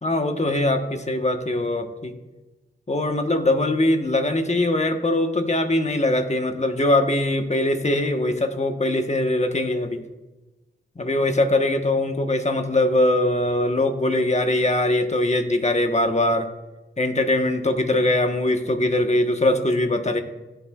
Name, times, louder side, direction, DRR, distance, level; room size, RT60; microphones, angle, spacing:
voice 1, 0.0-2.1 2.9-10.0 11.0-16.5 17.0-20.2, left 1 dB, 30° left, 5 dB, 1.2 m, -22 dB
17.0 x 7.6 x 2.4 m, 1.1 s
cardioid pair, 45°, 21 cm